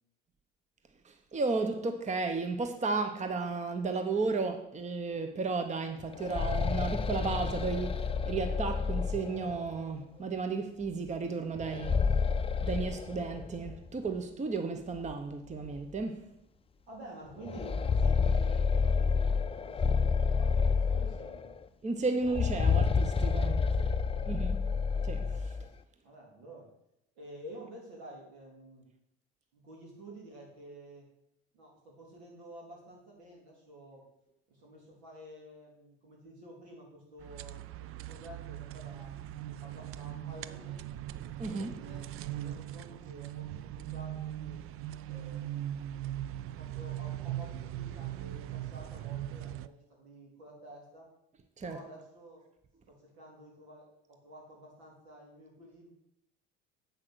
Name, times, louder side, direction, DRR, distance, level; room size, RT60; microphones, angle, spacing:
voice 1, 1.0-12.0 12.6-16.3 21.8-23.5 24.3-24.6 25.0-25.6 41.4-41.7 51.6-51.8, right 4 dB, 20° right, 0.9 m, -33 dB
sound 1, 6.0-9.8 11.6-13.8 14.1-14.2 15.1-15.2 15.6-15.8 17.4-21.6 22.2-25.6, left 5 dB, 15° left, 0.5 m, -29 dB
voice 2, 16.9-19.2 19.6-21.5 23.4-24.5 26.0-26.7 27.1-28.9 29.5-31.1 31.5-34.0 34.5-39.1 39.6-41.1 41.4-44.6 45.1-46.0 46.6-51.1 51.6-52.4 52.9-55.9, right 1 dB, 80° right, 3.4 m, -51 dB
sound 2, 37.2-49.7, right 12 dB, 45° right, 0.4 m, -40 dB
8.1 x 6.0 x 6.1 m
hypercardioid pair, 70°, 32 cm